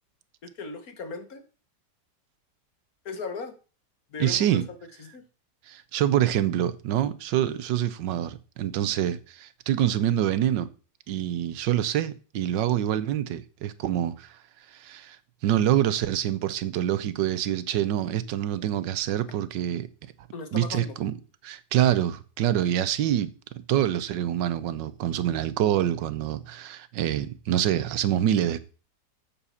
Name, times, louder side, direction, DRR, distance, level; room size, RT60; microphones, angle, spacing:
voice 1, 0.4-1.4 3.1-3.6 4.1-5.2 20.3-20.9, left 4 dB, 55° left, 1.8 m, -37 dB
voice 2, 4.2-4.7 5.7-10.7 11.1-14.4 14.7-15.2 15.4-19.9 20.5-21.2 21.4-28.6, right 11 dB, 85° right, 1.5 m, -26 dB
7.5 x 7.0 x 7.0 m
omnidirectional pair, 1.9 m